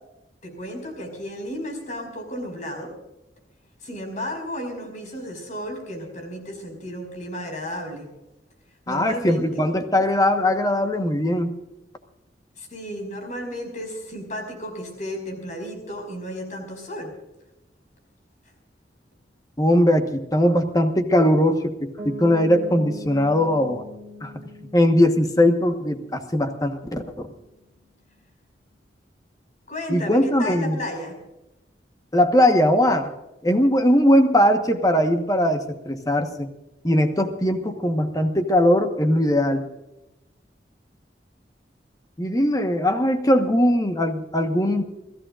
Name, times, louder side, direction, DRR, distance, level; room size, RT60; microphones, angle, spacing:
voice 1, 0.4-2.9 3.8-8.1 8.9-9.6 12.6-17.1 29.7-31.1, equal, 45° left, 3 dB, 5.3 m, -33 dB
voice 2, 8.9-11.6 19.6-23.8 24.2-24.3 24.7-27.3 29.9-30.8 32.1-33.1 33.4-36.5 36.8-39.6 42.2-44.8, left 1 dB, 20° left, 6 dB, 1.2 m, -20 dB
Piano, 22.0-27.7, left 1 dB, 15° right, 3.3 m, -41 dB
30.0 x 15.0 x 2.5 m, 0.97 s
head